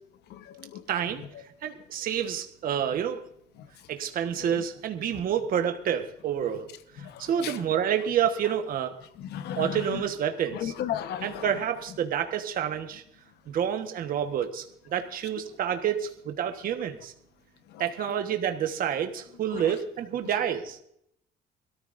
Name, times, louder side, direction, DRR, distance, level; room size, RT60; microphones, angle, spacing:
voice 1, 0.3-0.9 3.6-3.7 4.4-4.6 5.1-5.2 7.0-7.7 9.2-10.0 10.5-11.6 17.7-18.1 19.5-19.7, left 10 dB, 75° left, 1.1 m, -36 dB
voice 2, 0.9-1.2 1.6-3.2 3.9-6.7 7.0-8.9 9.6-10.7 11.2-13.0 13.5-14.6 14.9-17.1 17.8-20.8, right 9 dB, 55° right, 1.3 m, -28 dB
23.0 x 13.5 x 2.6 m
cardioid pair, 110°, 17 cm